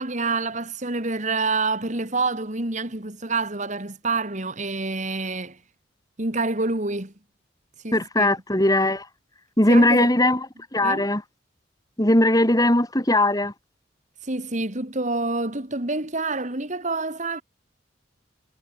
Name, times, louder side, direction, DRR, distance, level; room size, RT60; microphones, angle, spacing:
voice 1, 0.0-5.6 6.2-7.1 7.8-8.4 9.7-10.1 10.8-11.1 14.2-17.4, right 3 dB, 40° right, 2.8 m, -27 dB
voice 2, 7.9-9.0 9.6-10.4 10.7-11.2 12.0-13.5, left 1 dB, 20° left, 3.4 m, -19 dB
head